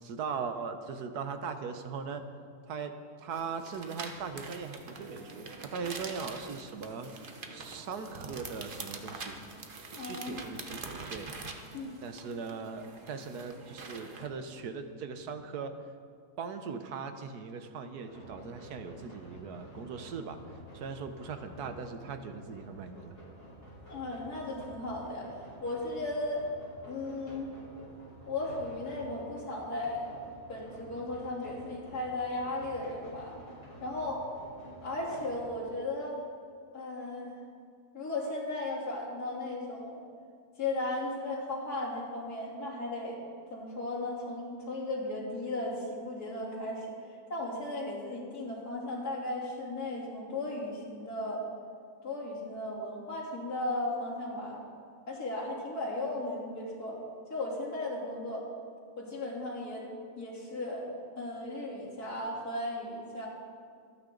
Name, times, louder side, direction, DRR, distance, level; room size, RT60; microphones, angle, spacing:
voice 1, 0.0-2.2 2.7-9.4 9.9-11.3 12.0-15.7 16.4-20.4 20.7-23.1, right 5 dB, 80° right, 8 dB, 1.5 m, -39 dB
sound 1, 3.3-14.3, right 3 dB, 40° right, 1.1 m, -45 dB
voice 2, 9.9-10.5 11.7-11.9 23.9-25.3 25.6-26.4 26.9-27.5 28.3-30.1 30.5-33.4 33.8-34.2 34.8-36.2 36.7-37.3 37.9-40.0 40.6-43.2 43.5-46.9 47.3-51.4 52.0-54.6 55.1-57.0 57.3-58.5 59.0-59.9 60.2-63.3, left 2 dB, 75° left, -5 dB, 3.8 m, -36 dB
sound 2, 18.1-35.5, right 1 dB, 45° left, 4.9 m, -51 dB
25.0 x 9.7 x 3.9 m, 2.1 s
omnidirectional pair, 1.6 m